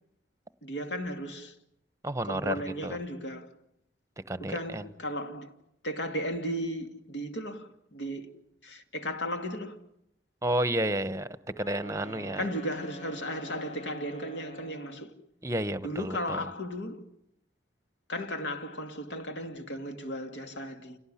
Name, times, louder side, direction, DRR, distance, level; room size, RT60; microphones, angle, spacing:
voice 1, 0.6-1.5 2.2-3.5 4.4-5.5 5.8-8.3 8.6-9.8 12.4-15.1 15.8-17.0 18.1-21.0, equal, 65° left, 2.6 m, -35 dB
voice 2, 2.0-2.5 2.8-3.0 4.3-4.9 10.4-11.3 11.6-12.4 15.4-16.5, right 1 dB, 15° right, 1.0 m, -31 dB
Wind instrument woodwind instrument, 11.5-15.2, right 1 dB, 35° left, 2.1 m, -47 dB
28.5 x 18.0 x 10.0 m
head